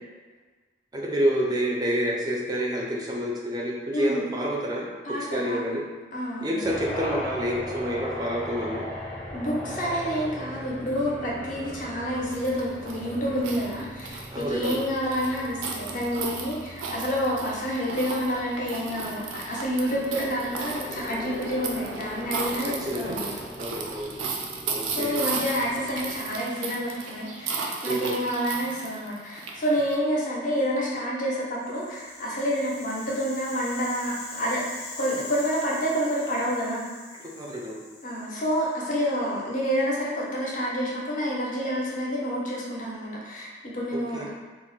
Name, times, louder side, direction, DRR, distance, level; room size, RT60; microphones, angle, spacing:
voice 1, 0.9-4.9 5.3-5.8 6.4-8.9 14.3-14.8 22.8-23.3 23.6-24.1 24.7-25.3 27.9-28.2 37.4-37.8 44.1-44.3, equal, 20° right, -2 dB, 0.3 m, -28 dB
voice 2, 3.9-4.2 5.0-5.8 6.1-6.6 9.3-23.3 25.0-34.6 35.0-36.8 38.0-44.3, equal, 40° left, -4 dB, 0.6 m, -28 dB
sound 1, 6.6-26.3, equal, 10° left, 0.7 m, -39 dB
sound 2, 12.3-30.0, right 4 dB, 90° right, 0.4 m, -35 dB
Rattle (instrument), 31.5-39.7, left 3 dB, 85° left, 0.6 m, -43 dB
2.3 x 2.0 x 3.8 m, 1.3 s
head